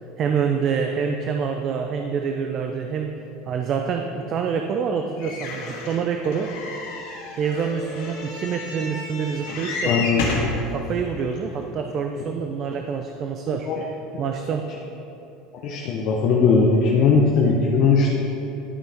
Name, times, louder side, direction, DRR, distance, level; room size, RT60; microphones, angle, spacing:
voice 1, 0.2-3.1 3.5-6.5 7.4-10.1 10.7-13.7 14.2-14.7, right 6 dB, 45° right, 5 dB, 0.5 m, -26 dB
sound 1, 5.2-10.6 11.3-11.4 11.6-11.7, left 3 dB, 85° left, 1.8 m, -31 dB
voice 2, 9.8-10.2 13.7-13.8 15.6-18.1, left 4 dB, 55° left, -2 dB, 0.9 m, -19 dB
11.5 x 5.3 x 3.5 m, 2.9 s
supercardioid pair, 120°, 0 cm